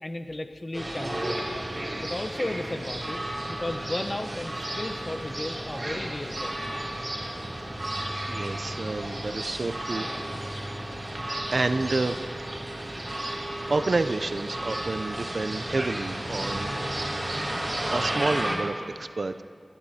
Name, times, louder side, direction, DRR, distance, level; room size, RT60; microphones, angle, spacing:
voice 1, 0.0-1.5 2.0-6.8, left 1 dB, 45° left, 8 dB, 0.8 m, -35 dB
sound 1, 0.7-18.6, right 1 dB, 45° right, 2.6 m, -33 dB
voice 2, 8.3-10.1 11.1-12.2 12.5-12.8 13.7-16.7 17.9-19.4, right 3 dB, 70° right, 11 dB, 0.4 m, -29 dB
19.0 x 12.0 x 2.8 m, 2.3 s
wide cardioid pair, 45°, 0 cm